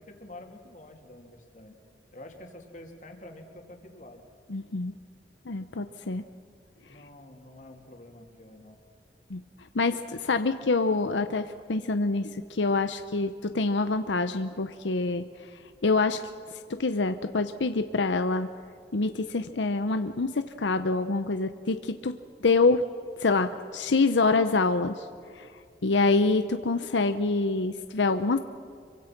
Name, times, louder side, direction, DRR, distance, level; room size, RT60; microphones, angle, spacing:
voice 1, 0.0-1.7 2.1-4.3 6.9-8.8, left 1 dB, 45° left, 3 dB, 3.0 m, -47 dB
voice 2, 4.5-4.9 5.5-6.2 9.3-9.4 9.7-15.2 15.8-16.2 16.7-18.5 18.9-22.1 22.4-22.9 23.2-25.1 25.3-25.5 25.8-28.4, left 3 dB, 85° left, 9 dB, 0.8 m, -26 dB
26.0 x 24.0 x 6.0 m, 2.3 s
head